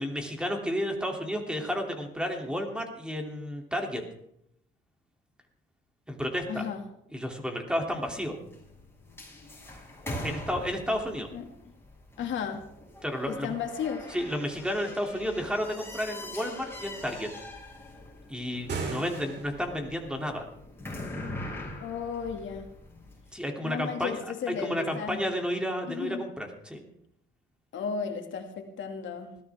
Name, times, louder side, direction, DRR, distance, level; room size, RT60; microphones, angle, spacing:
voice 1, 0.0-4.0 6.1-6.7 7.1-8.4 10.2-11.3 13.0-13.5 14.1-17.3 18.3-20.5 23.3-24.2 24.6-26.8, equal, 5° right, 2 dB, 3.0 m, -32 dB
voice 2, 6.5-6.8 11.3-11.4 12.2-12.7 13.3-14.1 21.8-22.7 23.6-25.2 25.9-26.3 27.7-29.4, left 7 dB, 70° left, 4 dB, 2.3 m, -34 dB
sound 1, 7.9-23.3, left 1 dB, 10° left, 6.7 m, -43 dB
sound 2, 18.5-19.8, right 4 dB, 60° right, 3.4 m, -36 dB
20.0 x 14.5 x 3.6 m, 0.76 s
cardioid pair, 90°, 20 cm